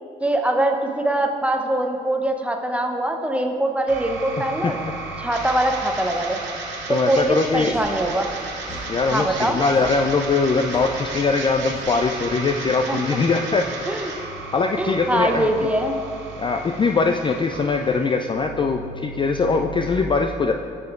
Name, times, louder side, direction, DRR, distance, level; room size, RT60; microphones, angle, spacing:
voice 1, 0.2-4.8 5.2-6.4 6.9-8.3 9.1-9.6 12.9-13.2 13.9-14.1 14.8-16.0, right 1 dB, 5° right, 4 dB, 0.7 m, -23 dB
sound 1, 3.9-19.9, right 3 dB, 65° right, 0.9 m, -34 dB
voice 2, 4.4-4.7 6.9-7.7 8.9-13.6 14.5-15.5 16.4-20.5, left 4 dB, 25° left, 4 dB, 0.3 m, -21 dB
sound 2, 7.7-7.9 8.6-8.9 9.7-9.9 10.7-10.9 11.7-11.9, left 1 dB, 70° left, 1.3 m, -39 dB
9.2 x 6.0 x 2.4 m, 2.5 s
hypercardioid pair, 45°, 20 cm